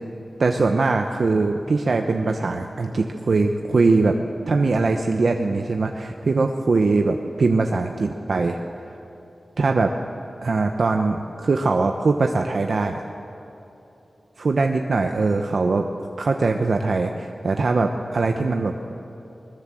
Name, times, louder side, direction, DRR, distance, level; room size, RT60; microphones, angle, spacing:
voice 1, 0.4-4.2 4.5-8.6 9.6-9.9 10.4-13.0 14.4-15.9 16.2-18.7, right 3 dB, 70° right, 4 dB, 0.9 m, -21 dB
21.0 x 20.0 x 7.6 m, 3.0 s
wide cardioid pair, 75°, 0 cm